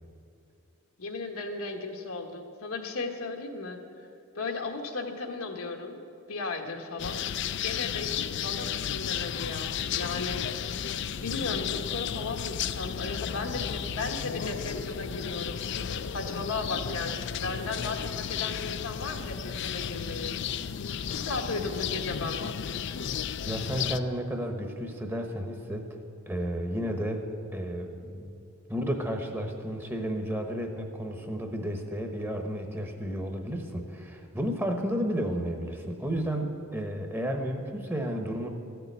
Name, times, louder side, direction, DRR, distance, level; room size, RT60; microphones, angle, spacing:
voice 1, 1.0-4.1 4.3-6.0 6.3-7.3 7.6-10.8 11.2-20.4 21.1-22.4, left 3 dB, 80° left, 4 dB, 1.4 m, -36 dB
sound 1, 7.0-24.0, left 8 dB, 55° left, 0.4 m, -33 dB
voice 2, 23.4-25.9 26.3-27.2 27.5-28.4 28.7-38.5, equal, 10° right, 4 dB, 0.9 m, -32 dB
14.0 x 6.8 x 9.3 m, 2.6 s
head